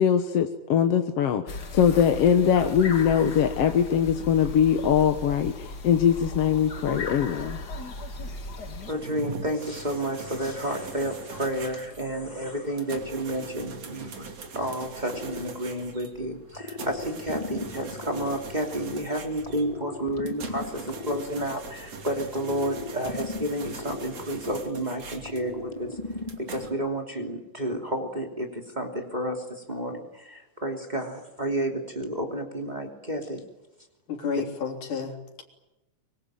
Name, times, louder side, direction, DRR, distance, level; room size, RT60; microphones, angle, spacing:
voice 1, 0.0-7.6, left 8 dB, 60° left, 7 dB, 2.0 m, -22 dB
sound 1, 1.5-8.9, left 3 dB, 35° left, 2.3 m, -36 dB
voice 2, 8.8-26.0 26.4-33.4, right 1 dB, 15° right, 3 dB, 2.9 m, -31 dB
sound 2, 8.9-26.7, right 4 dB, 55° right, 3.9 m, -42 dB
sound 3, 15.1-16.1 16.5-19.0 19.4-21.9 22.3-24.8 25.2-26.7, left 3 dB, 15° left, 1.8 m, -38 dB
voice 3, 34.1-35.4, left 5 dB, 90° left, 4 dB, 5.0 m, -31 dB
24.5 x 24.0 x 9.2 m, 0.95 s
omnidirectional pair, 3.5 m